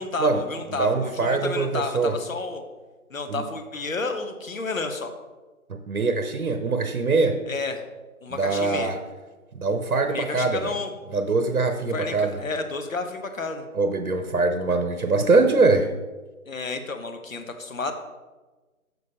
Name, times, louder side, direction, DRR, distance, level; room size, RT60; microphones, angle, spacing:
voice 1, 0.0-2.6 3.1-5.1 7.5-7.8 8.2-8.9 10.1-10.9 11.9-13.7 16.5-17.9, left 3 dB, 65° left, 6 dB, 1.1 m, -31 dB
voice 2, 0.8-2.1 3.3-3.4 5.7-7.4 8.3-9.0 9.5-10.7 11.1-12.4 13.7-15.9, right 3 dB, 85° right, 7 dB, 0.9 m, -23 dB
6.9 x 6.2 x 4.2 m, 1.2 s
figure-of-eight pair, 160°, 43 cm